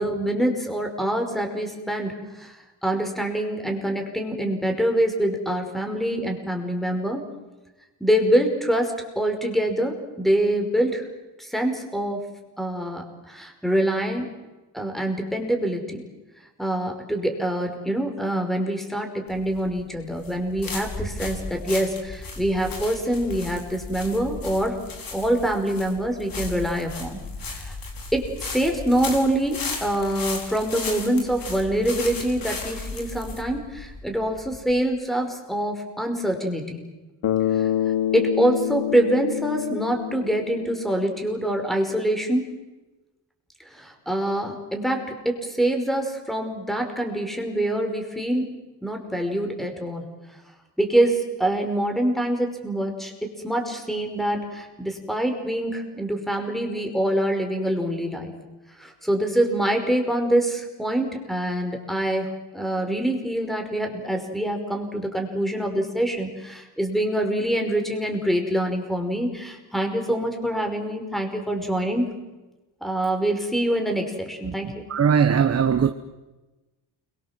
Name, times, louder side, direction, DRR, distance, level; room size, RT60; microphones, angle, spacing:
voice 1, 0.0-7.2 8.0-11.0 11.4-12.2 12.6-14.3 14.7-16.0 16.6-24.8 25.1-27.2 27.5-27.8 28.1-36.8 37.5-37.7 38.1-42.5 43.7-48.5 48.8-50.1 50.8-58.3 58.8-72.1 72.8-74.9, right 1 dB, ahead, 5.4 m, -25 dB
sound 1, 19.3-34.8, left 3 dB, 50° left, 5.3 m, -35 dB
Bass guitar, 37.2-41.5, left 11 dB, 75° left, 2.7 m, -27 dB
voice 2, 74.9-75.9, right 7 dB, 35° right, 1.2 m, -19 dB
29.0 x 24.0 x 7.6 m
cardioid pair, 120°, 43 cm